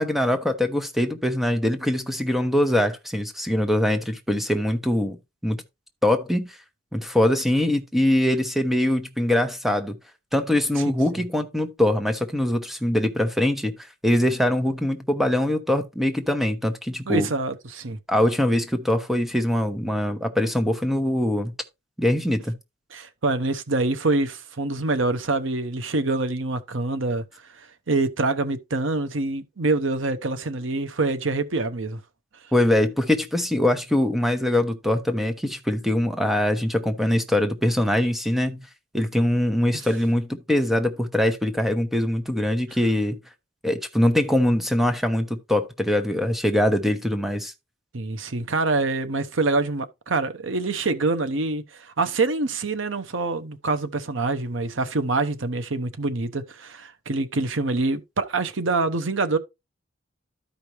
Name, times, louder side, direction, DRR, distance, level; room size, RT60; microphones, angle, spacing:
voice 1, 0.0-5.2 5.4-5.6 6.0-6.5 6.9-10.0 10.3-13.7 14.0-17.3 18.1-21.5 22.0-22.5 32.5-38.7 38.9-43.2 43.6-47.5, left 1 dB, ahead, 0.9 m, -23 dB
voice 2, 17.1-18.0 22.9-27.2 27.9-32.0 39.7-39.8 47.9-59.4, right 3 dB, 85° right, 0.9 m, -25 dB
13.0 x 5.1 x 3.1 m
head